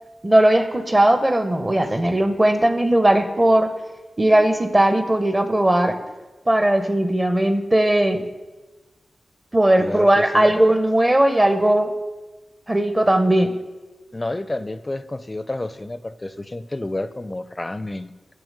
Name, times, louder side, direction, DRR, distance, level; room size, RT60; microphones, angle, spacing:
voice 1, 0.2-3.7 4.2-5.9 6.5-8.2 9.5-11.9 12.7-13.5, right 1 dB, 25° right, 9 dB, 0.7 m, -18 dB
voice 2, 9.8-10.5 14.1-18.1, left 2 dB, 25° left, 13 dB, 0.4 m, -30 dB
8.6 x 3.3 x 6.5 m, 1.2 s
cardioid pair, 55°, 0 cm